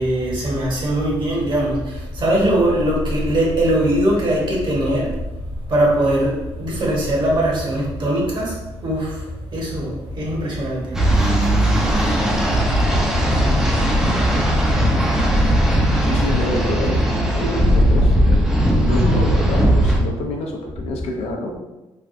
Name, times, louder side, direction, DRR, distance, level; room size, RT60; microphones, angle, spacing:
voice 1, 0.0-5.1 5.7-6.3 6.6-8.5 8.8-9.1 9.5-11.0, right 1 dB, 50° right, -4 dB, 1.2 m, -20 dB
sound 1, 10.9-20.0, equal, 5° right, 0.6 m, -17 dB
voice 2, 16.0-18.1 18.8-21.6, left 1 dB, 70° left, 0 dB, 0.6 m, -27 dB
3.3 x 2.2 x 2.5 m, 1.1 s
supercardioid pair, 70°, 11 cm